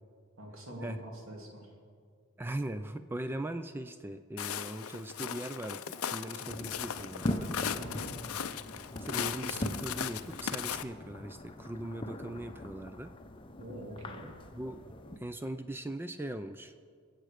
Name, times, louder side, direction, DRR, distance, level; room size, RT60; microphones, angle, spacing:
voice 1, 0.4-1.7 7.8-8.2 13.6-14.3, right 1 dB, 70° right, 0 dB, 2.6 m, -45 dB
voice 2, 2.4-7.6 9.0-13.1 14.5-14.9 15.2-16.8, right 1 dB, 10° right, 9 dB, 0.3 m, -40 dB
Walk footsteps, 4.4-10.8, left 9 dB, 85° left, 0.5 m, -38 dB
sound 1, 6.5-15.2, left 1 dB, 25° left, 0.7 m, -41 dB
23.0 x 7.8 x 4.9 m, 2.1 s
head